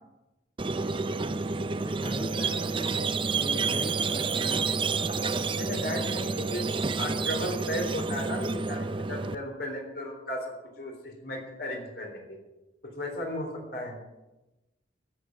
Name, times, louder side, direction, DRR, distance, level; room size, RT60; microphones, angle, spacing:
Squeak, 0.6-9.4, right 4 dB, 25° right, 0.5 m, -29 dB
voice 1, 1.8-3.0 3.3-4.7, equal, 30° left, -3 dB, 2.0 m, -39 dB
voice 2, 5.6-6.6 7.0-12.4 12.8-14.0, left 1 dB, 55° left, 1 dB, 3.6 m, -35 dB
14.0 x 7.6 x 7.6 m, 1.0 s
head